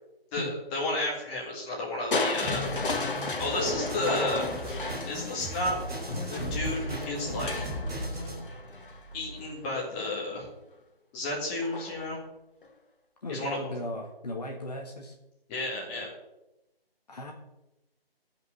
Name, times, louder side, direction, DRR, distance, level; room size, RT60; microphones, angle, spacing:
voice 1, 0.3-2.7 3.1-4.5 5.1-5.8 6.3-7.7 9.1-10.5 11.1-12.2 13.3-13.7 15.5-16.1, left 1 dB, 10° left, -4 dB, 2.1 m, -32 dB
Crushing, 2.1-10.1 11.6-12.1 12.6-12.7, left 3 dB, 60° left, 1.6 m, -34 dB
sound 1, 2.4-8.4, right 1 dB, 5° right, 0.7 m, -38 dB
voice 2, 13.2-15.1 17.1-17.3, left 1 dB, 40° left, 0 dB, 1.6 m, -36 dB
13.5 x 5.4 x 6.4 m, 0.94 s
figure-of-eight pair, 160°, 30 cm